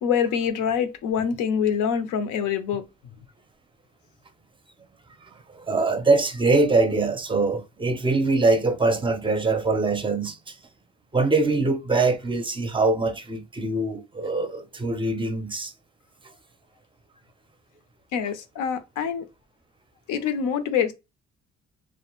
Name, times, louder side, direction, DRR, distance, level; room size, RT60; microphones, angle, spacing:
voice 1, 0.0-2.9 18.1-19.3 20.1-20.9, left 7 dB, 85° left, 0.5 m, -25 dB
voice 2, 5.2-10.6 11.1-15.7, right 3 dB, 15° right, 0.5 m, -23 dB
2.2 x 2.0 x 2.9 m
cardioid pair, 90°, 30 cm